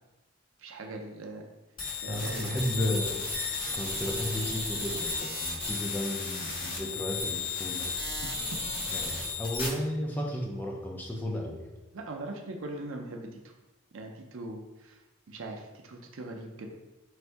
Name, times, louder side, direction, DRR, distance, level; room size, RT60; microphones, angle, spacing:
voice 1, 0.6-1.5 2.0-2.9 8.2-8.6 11.9-13.5 13.9-15.0 15.3-16.7, right 2 dB, 65° right, 2 dB, 0.5 m, -41 dB
sound 1, 1.8-9.7, left 4 dB, 60° left, 1.5 m, -34 dB
voice 2, 2.1-3.2 3.7-7.9 8.9-11.6, equal, 10° left, -1 dB, 0.4 m, -33 dB
3.2 x 2.6 x 4.4 m, 1.1 s
head